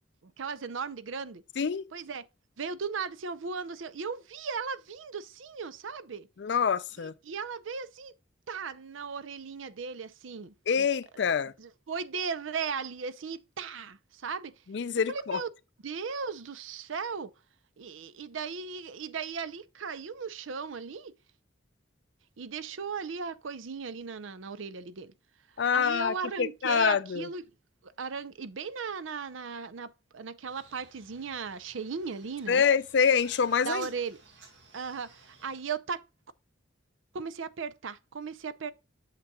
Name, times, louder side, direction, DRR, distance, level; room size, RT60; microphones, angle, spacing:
voice 1, 0.2-1.4 1.9-2.2 2.6-6.3 7.0-8.1 8.5-10.9 11.6-14.5 15.1-15.5 15.8-17.3 17.8-21.1 22.4-25.1 25.7-27.4 27.8-32.6 33.6-34.2 34.7-35.1 35.4-36.0 37.1-38.7, right 5 dB, 90° right, 0.6 m, -37 dB
voice 2, 1.6-1.9 6.4-7.1 10.7-11.5 14.7-15.4 25.6-27.3 32.5-33.9, left 6 dB, 65° left, 0.4 m, -26 dB
sound 1, 30.5-35.6, right 4 dB, 75° right, 1.9 m, -55 dB
8.1 x 6.8 x 2.3 m
head